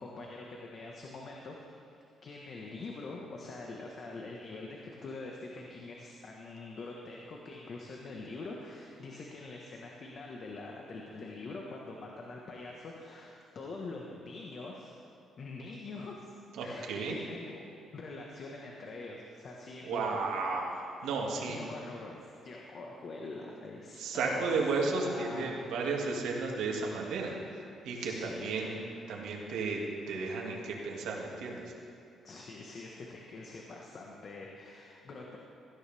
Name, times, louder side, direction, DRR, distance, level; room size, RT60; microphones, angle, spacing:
voice 1, 0.0-1.8 2.2-14.9 15.4-16.3 16.6-17.6 17.9-20.2 21.5-24.5 24.9-25.7 28.0-28.9 32.2-35.4, left 3 dB, 55° left, -1 dB, 1.6 m, -44 dB
voice 2, 16.5-17.2 19.8-21.6 24.0-28.8 29.1-29.8 30.1-31.7, right 4 dB, 85° right, -1 dB, 2.3 m, -33 dB
17.0 x 15.0 x 3.6 m, 2.5 s
cardioid pair, 90°, 0 cm